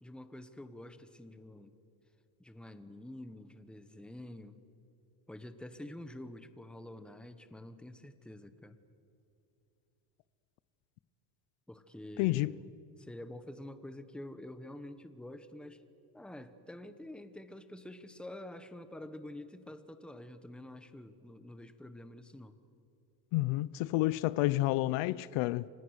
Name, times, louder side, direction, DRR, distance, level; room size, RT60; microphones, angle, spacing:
voice 1, 0.0-1.7 2.4-4.6 5.3-8.8 11.7-12.7 13.0-15.8 16.1-22.6, left 1 dB, ahead, 1.0 m, -48 dB
voice 2, 12.2-12.5 23.3-25.7, left 18 dB, 70° left, 0.7 m, -30 dB
29.5 x 25.5 x 6.5 m
cardioid pair, 150°, 50 cm